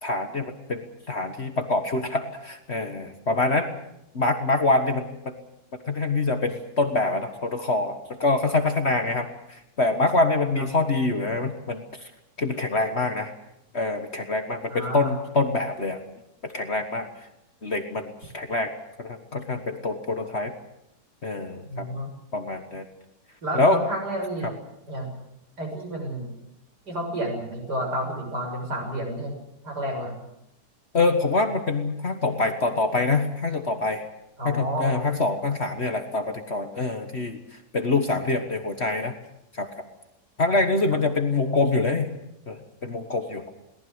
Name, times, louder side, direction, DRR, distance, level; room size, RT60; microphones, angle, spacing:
voice 1, 0.0-3.7 4.1-5.3 5.9-12.1 12.4-13.3 13.7-16.0 16.4-17.3 17.6-18.7 19.0-20.5 21.2-21.9 22.3-22.9 23.5-23.8 24.4-24.5 30.9-34.0 34.4-39.1 39.5-39.9 40.4-42.1 42.5-43.4, left 3 dB, 40° left, 7 dB, 1.7 m, -25 dB
voice 2, 14.7-15.1 21.7-22.1 23.4-24.6 24.9-25.1 25.6-26.3 26.9-29.3 29.6-30.2 34.4-35.0, right 1 dB, 90° right, 1 dB, 7.2 m, -30 dB
22.0 x 18.5 x 8.0 m, 0.84 s
omnidirectional pair, 1.7 m